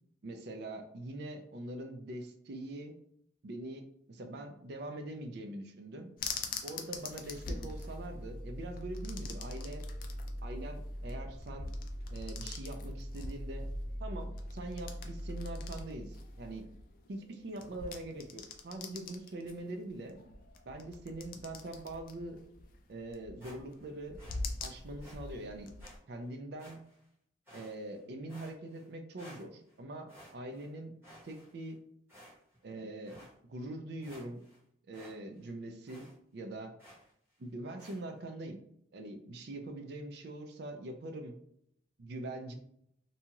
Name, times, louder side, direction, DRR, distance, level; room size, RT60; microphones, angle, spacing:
voice 1, 0.2-2.9 3.4-6.1 6.6-9.8 10.4-11.7 12.1-13.7 14.0-16.7 17.1-20.2 20.6-22.4 22.9-24.2 24.6-25.7 26.1-26.8 27.5-30.9 31.2-31.8 32.6-33.2 33.5-34.4 34.9-36.1 36.3-36.7 37.4-38.6 38.9-41.3 42.0-42.5, right 1 dB, 55° right, 5 dB, 0.4 m, -43 dB
sound 1, 6.2-26.0, left 4 dB, 45° left, 0.3 m, -45 dB
sound 2, 7.2-16.8, equal, 25° left, 0.9 m, -42 dB
sound 3, 23.4-23.9 24.2-24.4 25.0-25.2 25.8-26.0 26.6-27.1 27.5-28.0 28.3-28.9 29.2-29.7 30.1-30.7 31.0-31.7 32.1-32.6 33.1-33.3 33.7-33.8 34.0-34.6 34.9-35.2 35.4-35.5 35.9-36.1 36.8-37.1 37.8-38.0, equal, 10° right, 1.1 m, -55 dB
2.7 x 2.3 x 2.9 m, 0.71 s
head